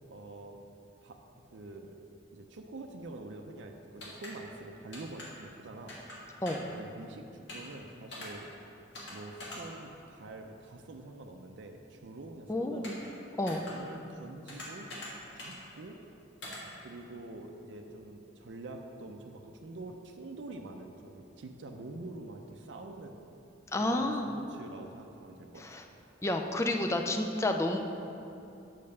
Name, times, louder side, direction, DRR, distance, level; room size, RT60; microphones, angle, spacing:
voice 1, 0.1-0.6 1.0-1.2 1.5-2.0 2.3-6.0 6.7-8.4 9.1-13.0 13.7-14.9 15.4-16.0 16.8-23.2 23.8-25.7, right 2 dB, 65° right, 3 dB, 0.5 m, -46 dB
sound 1, 4.0-4.3 4.9-5.3 5.9-6.2 6.4-6.7 7.5-7.7 8.1-8.3 8.9-9.1 9.4-9.6 12.8-13.1 13.5-13.7 14.5-15.1 15.4-15.6 16.4-16.6, left 2 dB, 65° left, 1.6 m, -43 dB
voice 2, 12.5-13.0 13.4-13.7 23.7-24.3 25.6-25.8 26.2-27.8, left 1 dB, 15° left, 4 dB, 0.4 m, -30 dB
5.6 x 5.3 x 6.8 m, 2.8 s
head